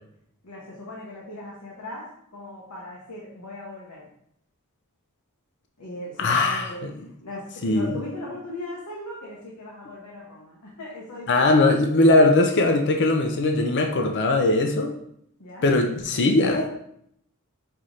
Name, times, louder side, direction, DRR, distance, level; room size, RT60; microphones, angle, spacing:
voice 1, 0.4-4.0 5.8-11.5 12.0-12.1 15.4-15.7, left 1 dB, 80° left, -4 dB, 0.9 m, -38 dB
voice 2, 6.2-6.9 7.6-7.9 11.3-14.9 15.6-16.8, left 2 dB, 50° left, 4 dB, 0.4 m, -20 dB
5.5 x 2.6 x 3.1 m, 0.72 s
head